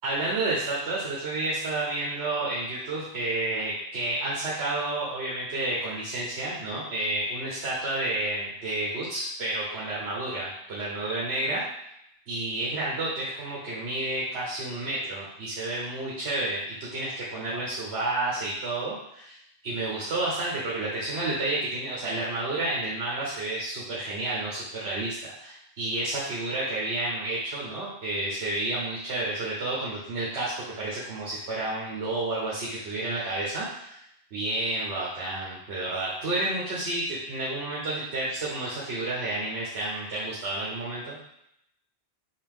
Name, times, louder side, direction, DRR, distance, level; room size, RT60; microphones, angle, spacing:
voice 1, 0.0-11.6 12.3-19.4 19.6-34.0 34.3-41.2, right 2 dB, 90° right, -7 dB, 1.3 m, -30 dB
5.5 x 2.6 x 3.6 m, 0.78 s
omnidirectional pair, 1.1 m